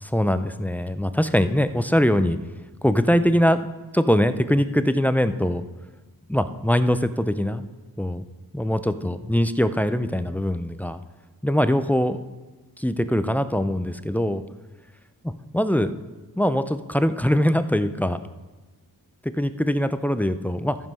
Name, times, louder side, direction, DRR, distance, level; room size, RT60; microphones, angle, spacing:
voice 1, 0.0-2.4 2.8-3.6 3.9-5.6 6.3-7.6 8.0-8.2 8.5-11.0 11.4-12.2 12.8-14.4 15.5-15.9 16.3-18.2 19.2-20.8, equal, 5° left, 11 dB, 0.3 m, -22 dB
13.5 x 5.4 x 5.4 m, 1.2 s
wide cardioid pair, 110°, 38 cm